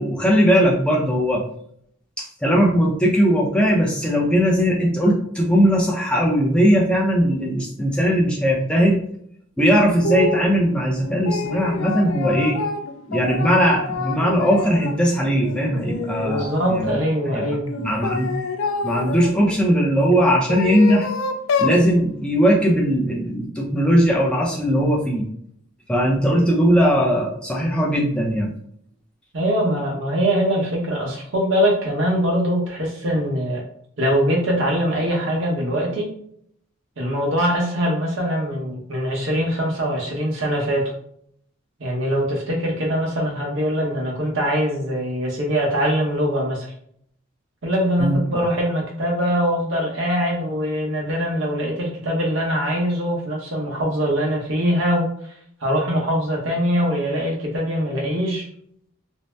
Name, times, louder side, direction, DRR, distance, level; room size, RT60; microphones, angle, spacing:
voice 1, 0.0-1.4 2.2-9.0 9.6-12.6 13.1-16.9 17.2-17.4 17.8-18.3 18.8-21.1 21.6-25.3 25.9-28.5 48.0-48.2, equal, 5° left, -3 dB, 0.5 m, -19 dB
sound 1, 10.0-10.5 11.0-15.0 15.4-17.0 17.7-19.3 20.1-21.8, left 4 dB, 75° left, 0.4 m, -27 dB
voice 2, 16.2-17.7 29.3-33.6 34.0-36.1 37.0-40.9 41.8-46.7 47.6-55.1 55.6-58.4, equal, 65° right, -1 dB, 0.9 m, -22 dB
2.6 x 2.0 x 3.2 m, 0.67 s
head